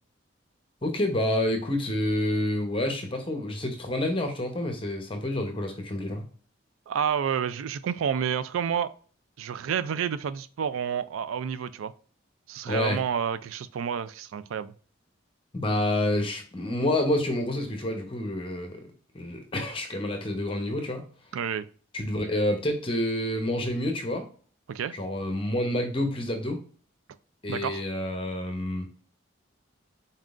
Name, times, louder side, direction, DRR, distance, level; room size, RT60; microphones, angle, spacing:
voice 1, 0.8-6.2 12.7-13.0 15.5-18.8 19.1-21.0 21.9-24.2 24.9-26.6 27.4-28.9, left 1 dB, 25° left, 0.7 m, -28 dB
voice 2, 6.9-8.9 9.4-11.9 12.5-14.7 21.3-21.7 24.7-24.9 27.5-27.8, right 7 dB, 85° right, 0.3 m, -29 dB
4.2 x 3.6 x 2.4 m
head